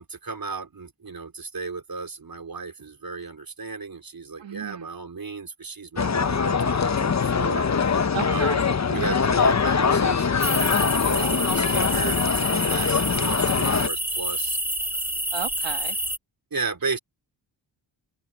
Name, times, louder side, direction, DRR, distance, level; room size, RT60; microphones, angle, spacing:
voice 1, 0.0-7.7 8.3-8.6 8.9-12.2 12.5-14.6 16.5-17.0, right 4 dB, 50° right, 3.8 m, -34 dB
voice 2, 4.4-4.9 8.1-8.7 15.3-16.0, right 8 dB, 70° right, 1.7 m, -33 dB
sound 1, 6.0-13.9, left 5 dB, 35° left, 0.9 m, -23 dB
sound 2, 10.4-16.2, right 1 dB, 5° right, 2.3 m, -28 dB
open air
cardioid pair, 65°, 46 cm